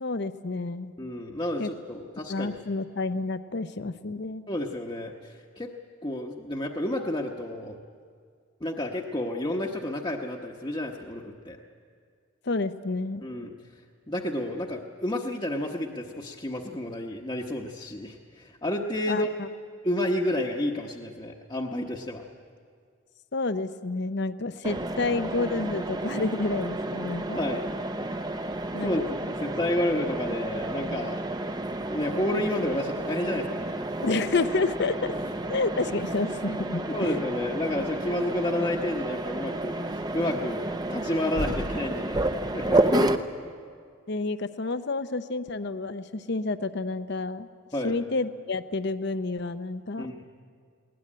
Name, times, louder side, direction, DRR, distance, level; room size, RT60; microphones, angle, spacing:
voice 1, 0.0-0.9 1.6-1.7 2.3-4.4 12.4-13.2 19.1-19.5 23.3-27.4 28.7-28.9 34.0-35.1 35.4-37.2 44.1-47.5 47.8-50.1, left 3 dB, 50° left, 11 dB, 0.7 m, -29 dB
voice 2, 1.0-2.5 4.5-5.7 6.0-7.8 8.6-11.6 13.2-13.5 14.1-19.3 19.8-22.2 27.3-27.6 28.8-31.2 31.7-33.9 35.0-35.1 36.9-42.2 42.5-43.2 47.7-48.0 50.0-50.2, left 1 dB, 20° left, -1 dB, 1.0 m, -30 dB
Mechanisms, 24.6-43.2, right 1 dB, 20° right, 0.7 m, -30 dB
20.5 x 19.0 x 9.9 m, 2.1 s
head